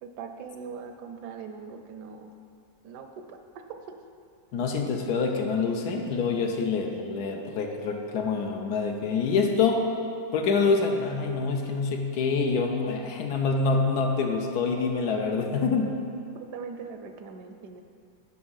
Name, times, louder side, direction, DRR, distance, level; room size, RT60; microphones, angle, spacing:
voice 1, 0.0-2.3 2.8-3.4 3.7-4.0 16.3-17.8, right 5 dB, 75° right, 6 dB, 1.1 m, -41 dB
voice 2, 4.5-9.9 10.3-15.9, left 4 dB, 70° left, 3 dB, 1.1 m, -26 dB
6.2 x 6.0 x 5.6 m, 2.3 s
omnidirectional pair, 1.9 m